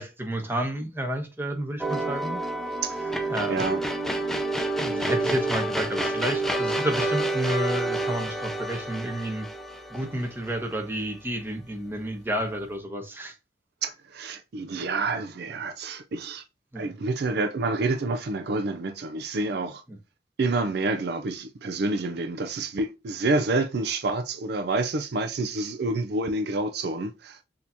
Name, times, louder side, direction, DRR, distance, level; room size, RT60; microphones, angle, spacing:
voice 1, 0.0-2.4 3.3-3.6 4.8-9.5 9.9-13.4 16.7-16.9, right 1 dB, 15° right, 0.9 m, -30 dB
sound 1, 1.8-11.0, right 2 dB, ahead, 0.5 m, -29 dB
voice 2, 2.8-3.2 3.5-3.8 13.8-16.4 16.8-19.8 20.4-27.4, right 3 dB, 65° right, 0.5 m, -28 dB
6.4 x 2.8 x 2.7 m
head